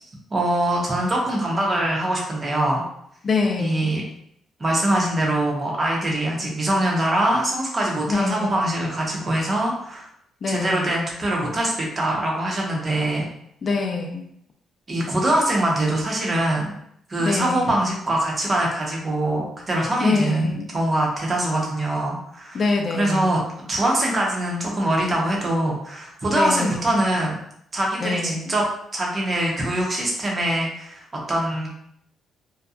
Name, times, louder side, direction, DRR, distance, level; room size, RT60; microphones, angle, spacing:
voice 1, 0.3-2.8 3.6-4.0 4.6-10.1 10.5-13.3 14.9-16.7 17.1-22.6 22.9-23.4 23.7-27.4 27.7-28.7 28.9-31.7, right 1 dB, 35° right, -2 dB, 0.8 m, -23 dB
voice 2, 3.2-4.0 8.1-8.6 10.4-11.0 13.6-14.2 17.2-17.8 20.0-20.7 22.5-23.4 26.3-27.0 28.0-28.5, left 4 dB, 45° left, 3 dB, 0.5 m, -25 dB
2.7 x 2.2 x 2.4 m, 0.72 s
cardioid pair, 90°, 0 cm